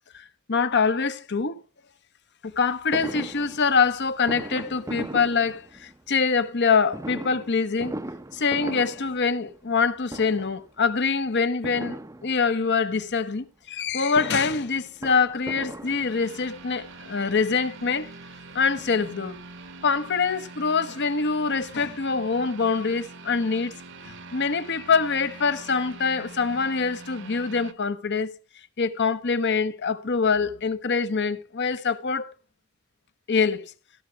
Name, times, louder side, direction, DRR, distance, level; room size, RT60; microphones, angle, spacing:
voice 1, 0.1-1.6 2.4-7.9 8.3-18.1 18.5-19.4 19.8-23.7 24.0-28.3 28.8-32.3 33.3-33.6, left 5 dB, 55° left, 1.0 m, -24 dB
Fireworks, 2.9-6.1 6.9-9.8 10.1-10.7 11.6-12.7 13.9-16.5 17.3-17.4 17.7-17.8 18.1-19.4 19.7-19.8 20.0-20.1, right 1 dB, 15° right, 0.6 m, -38 dB
sound 1, 15.8-27.7, right 3 dB, 60° right, 1.2 m, -44 dB
17.0 x 6.1 x 4.6 m
head